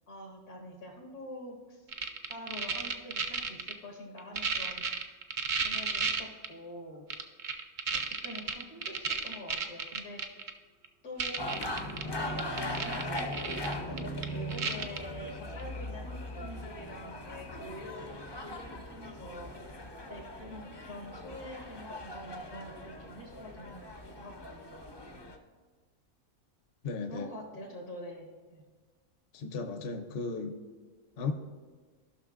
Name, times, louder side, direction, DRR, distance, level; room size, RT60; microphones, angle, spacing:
voice 1, 0.1-1.9 2.3-4.8 5.6-7.1 7.9-10.5 11.0-11.4 12.0-19.6 20.1-24.9 27.1-28.7, left 1 dB, 85° left, -1 dB, 2.2 m, -46 dB
sound 1, 1.9-3.7 4.2-6.5 7.1-10.5 10.8-10.9 11.2-12.0 12.3-15.0 15.6-15.7, right 5 dB, 60° right, 0.5 m, -33 dB
sound 2, 11.4-25.4, left 1 dB, 35° left, 0.4 m, -40 dB
voice 2, 26.8-27.3 29.3-30.6 31.2-31.3, left 4 dB, 50° left, 7 dB, 0.7 m, -35 dB
16.0 x 5.9 x 2.5 m, 1.4 s
omnidirectional pair, 1.5 m